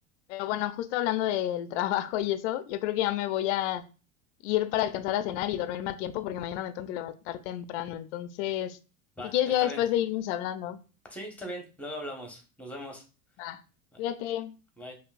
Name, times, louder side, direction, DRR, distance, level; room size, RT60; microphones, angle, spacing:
voice 1, 0.3-3.8 4.4-8.8 9.3-10.8 13.4-13.6 14.0-14.6, left 13 dB, 55° left, 0.6 m, -30 dB
voice 2, 9.2-9.8 11.1-13.0 13.9-14.0 14.8-14.9, equal, 5° left, 1.3 m, -40 dB
5.3 x 2.8 x 2.5 m
figure-of-eight pair, 80°, 43 cm